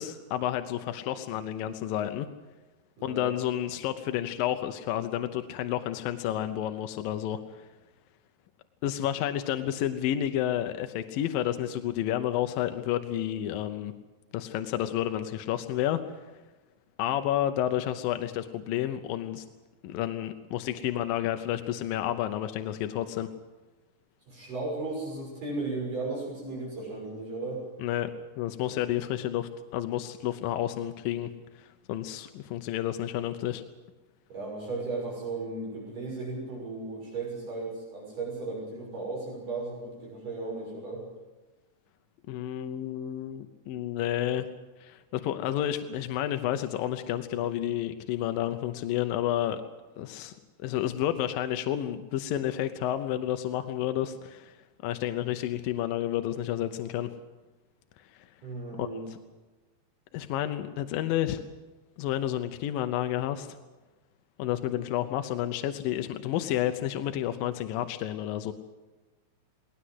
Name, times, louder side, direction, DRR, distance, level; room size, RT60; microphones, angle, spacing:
voice 1, 0.0-2.3 3.0-7.7 8.8-13.9 14.3-16.0 17.0-19.5 19.8-23.3 27.8-28.1 28.4-31.3 31.6-33.6 42.3-44.5 44.8-49.6 50.0-54.6 54.8-57.1 58.8-58.9 60.1-61.4 62.0-63.5 64.4-68.5, left 12 dB, 75° left, 8 dB, 2.2 m, -30 dB
voice 2, 3.0-3.3 24.3-27.6 34.3-41.0 58.4-59.0, right 3 dB, 50° right, -2 dB, 7.6 m, -35 dB
20.5 x 18.5 x 8.0 m, 1.2 s
omnidirectional pair, 4.8 m